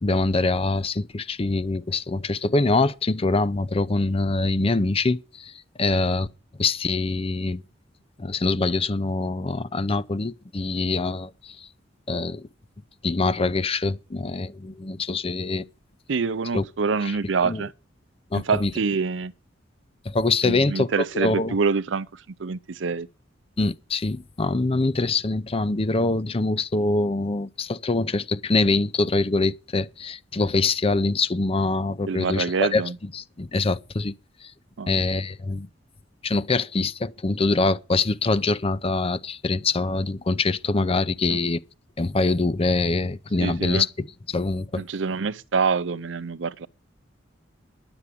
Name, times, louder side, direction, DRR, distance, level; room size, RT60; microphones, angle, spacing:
voice 1, 0.0-6.3 6.6-7.6 8.2-11.7 12.1-12.5 13.0-15.7 16.5-16.6 17.4-17.6 18.3-18.7 20.0-20.9 21.1-21.5 23.6-32.8 33.1-34.1 34.4-34.5 34.9-35.7 36.2-41.6 42.0-44.8, left 3 dB, 30° left, 0.6 m, -24 dB
voice 2, 16.1-17.7 18.3-19.3 20.4-23.1 32.1-33.0 34.8-35.0 43.4-43.9 44.8-46.7, right 5 dB, 90° right, 0.6 m, -26 dB
11.0 x 7.9 x 8.4 m
head